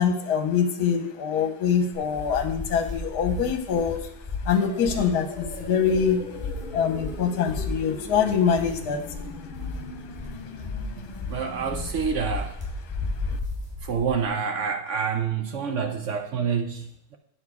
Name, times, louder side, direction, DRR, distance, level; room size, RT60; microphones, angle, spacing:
voice 1, 0.0-4.1 4.4-6.2 6.7-9.0 13.3-13.4, left 7 dB, 70° left, 6 dB, 1.3 m, -24 dB
sound 1, 1.9-14.3, left 3 dB, 5° right, 3.2 m, -35 dB
sound 2, 4.5-11.9, left 3 dB, 35° left, 1.0 m, -39 dB
voice 2, 11.3-12.5 13.8-17.2, right 6 dB, 65° right, 5 dB, 0.7 m, -27 dB
9.2 x 5.9 x 4.7 m, 0.74 s
omnidirectional pair, 1.8 m